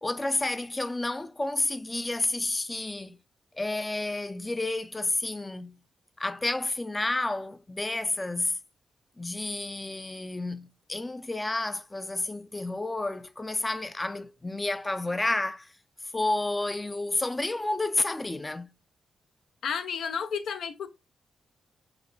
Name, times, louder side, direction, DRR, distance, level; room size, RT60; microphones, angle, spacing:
voice 1, 0.0-3.2 3.6-5.8 6.2-8.6 9.2-15.7 16.1-18.7, left 2 dB, 20° left, 0.3 m, -30 dB
voice 2, 19.6-20.9, left 6 dB, 80° left, 0.5 m, -32 dB
3.9 x 2.9 x 2.5 m
cardioid pair, 80°, 0 cm